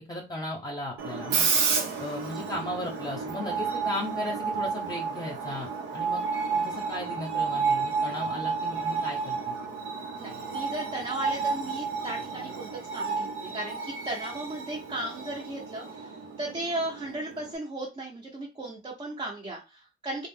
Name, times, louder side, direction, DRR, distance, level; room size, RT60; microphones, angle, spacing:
voice 1, 0.1-1.5 2.0-6.2 6.5-9.5, left 1 dB, 20° left, -1 dB, 0.8 m, -36 dB
Screech, 1.0-17.6, right 5 dB, 85° right, 0.7 m, -31 dB
voice 2, 10.1-20.3, right 1 dB, 25° right, -3 dB, 0.8 m, -36 dB
2.4 x 2.1 x 3.5 m, 0.27 s
cardioid pair, 90°, 20 cm